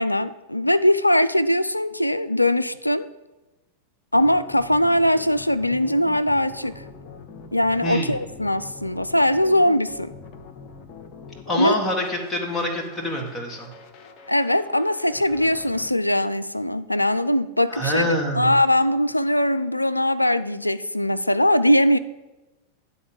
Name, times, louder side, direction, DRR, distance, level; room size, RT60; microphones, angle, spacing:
voice 1, 0.0-3.1 4.1-6.8 7.5-10.1 11.5-11.8 14.3-22.0, left 1 dB, 85° left, 14 dB, 0.3 m, -21 dB
sound 1, 4.1-15.9, left 4 dB, 35° left, 0.9 m, -44 dB
voice 2, 7.8-8.1 11.5-13.7 17.7-18.5, equal, 10° left, -1 dB, 1.8 m, -25 dB
9.9 x 4.2 x 7.0 m, 1.1 s
figure-of-eight pair, 90°, 0 cm